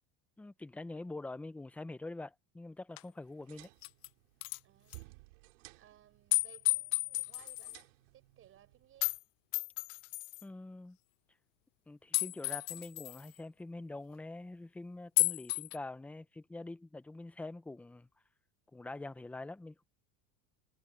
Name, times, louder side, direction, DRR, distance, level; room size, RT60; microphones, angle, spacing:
voice 1, 0.4-3.7 10.4-11.0 11.9-18.1 18.7-19.8, left 2 dB, 5° left, 0.5 m, -45 dB
sound 1, 3.0-3.1 3.6-4.1 4.4-4.6 4.9-5.0 6.3-7.8 9.0-9.2 9.5-10.4 12.1-13.3 15.2-15.8, left 25 dB, 90° left, 0.5 m, -33 dB
sound 2, 3.2-9.2, right 24 dB, 90° right, 3.4 m, -58 dB
voice 2, 4.6-5.1 5.7-7.8 8.1-9.1, right 12 dB, 35° right, 7.1 m, -61 dB
cardioid pair, 155°, 37 cm